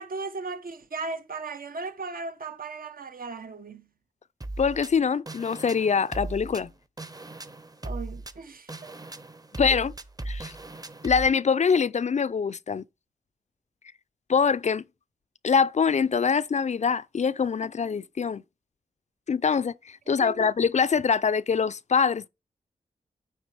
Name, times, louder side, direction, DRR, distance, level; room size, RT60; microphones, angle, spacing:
voice 1, 0.0-3.9 7.8-8.9 20.1-20.5, right 3 dB, 70° right, 1.1 m, -37 dB
sound 1, 4.4-11.3, right 2 dB, 25° right, 0.8 m, -38 dB
voice 2, 4.6-6.7 9.6-9.9 10.3-10.5 11.0-12.8 14.3-14.8 15.4-18.4 19.3-19.7 20.1-22.3, left 6 dB, 50° left, 0.4 m, -24 dB
9.1 x 3.8 x 4.9 m
cardioid pair, 60°, 15 cm